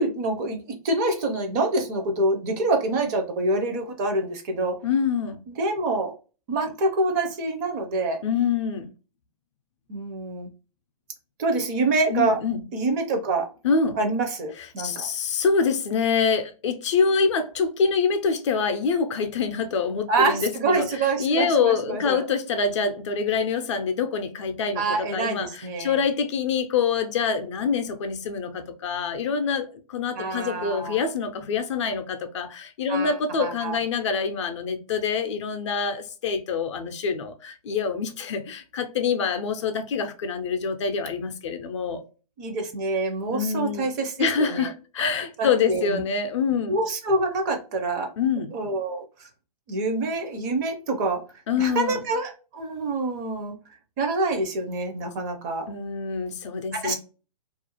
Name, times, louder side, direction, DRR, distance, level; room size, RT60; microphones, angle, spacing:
voice 1, 0.0-4.8 5.5-6.1 6.5-8.2 9.9-10.5 11.4-12.4 12.7-13.5 14.0-15.1 20.1-22.2 24.8-26.0 30.1-31.0 32.9-33.8 42.4-44.7 45.4-46.0 46.7-48.1 48.5-49.3 49.7-51.2 51.6-53.6 54.0-55.7 56.7-56.9, right 2 dB, 25° right, 0.5 m, -26 dB
voice 2, 4.8-5.4 8.2-8.9 12.1-12.6 13.6-14.0 14.8-20.9 21.2-42.0 43.3-43.9 44.2-46.8 48.2-48.5 51.5-52.0 55.7-56.9, left 5 dB, 50° left, 0.5 m, -25 dB
2.4 x 2.1 x 2.8 m
hypercardioid pair, 140°, 20 cm